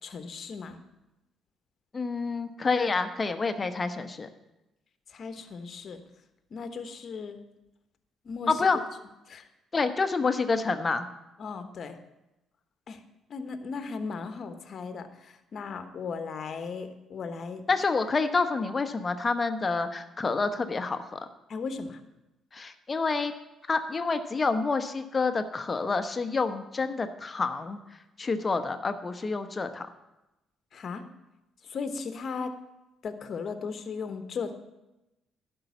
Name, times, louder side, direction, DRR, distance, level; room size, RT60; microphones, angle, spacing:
voice 1, 0.0-0.8 5.1-6.0 6.5-7.4 8.2-8.7 9.3-9.5 11.4-12.0 12.9-13.0 13.3-17.6 21.5-22.0 30.7-31.0 31.6-32.5 33.0-34.5, left 5 dB, 55° left, 8 dB, 1.1 m, -36 dB
voice 2, 1.9-4.3 8.5-8.8 9.7-11.1 17.7-21.2 22.5-23.3 23.7-27.8 28.2-29.9, left 4 dB, 35° left, 9 dB, 0.9 m, -28 dB
11.5 x 5.5 x 7.0 m, 0.96 s
supercardioid pair, 65°, 0 cm